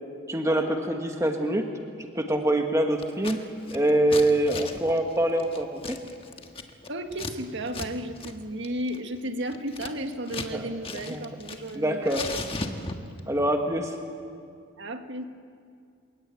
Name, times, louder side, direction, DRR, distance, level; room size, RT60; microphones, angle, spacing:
voice 1, 0.3-1.7 2.1-3.4 3.7-6.0 10.5-10.7 11.0-11.2 11.7-12.2 13.3-13.9, right 1 dB, 15° right, 3 dB, 1.4 m, -24 dB
Scissors, 3.0-3.4 3.6-7.3 7.7-7.9 8.2-8.3 8.6-10.5 10.8-11.8 12.0-13.2, left 3 dB, 25° left, 1.5 m, -37 dB
voice 2, 6.9-12.4 14.8-15.2, right 1 dB, 55° right, 6 dB, 1.8 m, -34 dB
29.5 x 17.0 x 9.3 m, 2.3 s
head